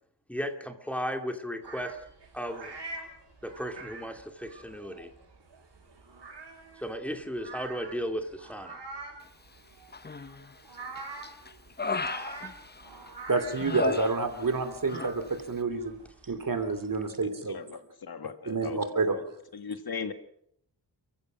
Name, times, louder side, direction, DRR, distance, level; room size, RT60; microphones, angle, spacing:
voice 1, 0.3-2.0 2.3-2.8 3.4-5.1 6.8-8.8, equal, 5° left, 5 dB, 2.4 m, -35 dB
sound 1, 1.6-17.1, right 3 dB, 70° right, 6.1 m, -46 dB
Human voice, 9.9-10.5 11.0-13.1 13.5-14.6 14.9-15.1, left 4 dB, 25° left, 0.8 m, -35 dB
voice 2, 13.3-16.0 16.3-17.8 18.5-19.2, right 3 dB, 50° right, 8 dB, 2.9 m, -29 dB
voice 3, 17.5-18.8 19.1-19.2 19.5-20.1, left 5 dB, 55° left, 9 dB, 1.7 m, -38 dB
29.5 x 15.0 x 6.2 m, 0.70 s
wide cardioid pair, 150°, 44 cm